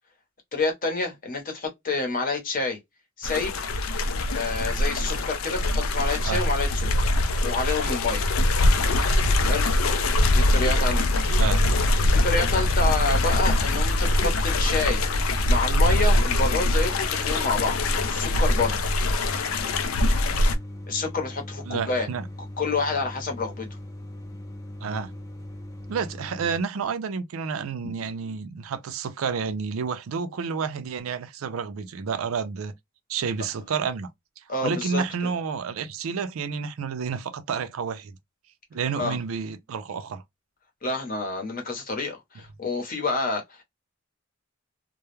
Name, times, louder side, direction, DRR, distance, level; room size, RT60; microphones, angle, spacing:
voice 1, 0.5-2.8 3.2-3.5 4.3-6.9 7.4-8.2 9.4-9.7 10.3-11.1 12.1-15.0 15.5-17.8 18.0-18.8 20.9-22.1 22.4-23.7 34.5-35.0 38.9-39.2 40.8-43.6, left 3 dB, 45° left, 0.8 m, -28 dB
sound 1, 3.2-20.5, left 1 dB, 85° left, 0.4 m, -23 dB
sound 2, 11.3-26.6, left 1 dB, 15° left, 0.5 m, -38 dB
voice 2, 21.7-22.3 24.8-25.1 25.9-32.7 33.1-34.1 34.6-38.2 38.7-40.2, right 6 dB, 90° right, 0.4 m, -30 dB
2.2 x 2.0 x 3.0 m
head